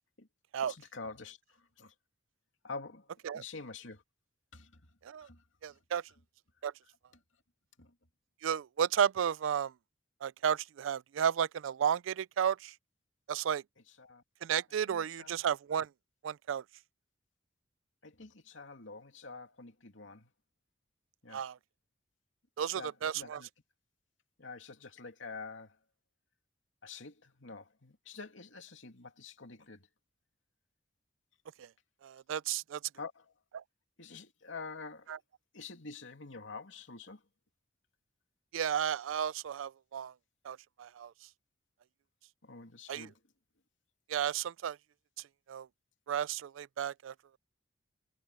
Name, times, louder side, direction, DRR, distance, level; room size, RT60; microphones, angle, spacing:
voice 1, 0.7-1.4 1.8-1.9 2.6-3.1 3.3-4.0 4.5-4.7 5.2-5.4 7.8-7.9 14.0-14.2 14.9-15.3 18.0-20.3 21.2-21.4 22.6-23.5 24.4-25.7 26.8-29.8 33.0-33.3 34.0-35.1 35.5-37.2 42.4-43.1, left 4 dB, 80° left, 2.7 m, -47 dB
voice 2, 5.6-6.0 6.6-6.7 8.4-9.7 10.2-12.7 13.3-13.6 14.4-15.9 16.2-16.6 21.3-21.6 22.6-23.4 31.6-31.7 32.0-32.8 33.5-33.6 35.1-35.2 38.5-40.1 40.4-41.1 42.9-43.1 44.1-44.8 45.5-45.7 46.1-47.4, right 8 dB, 90° right, 0.4 m, -33 dB
head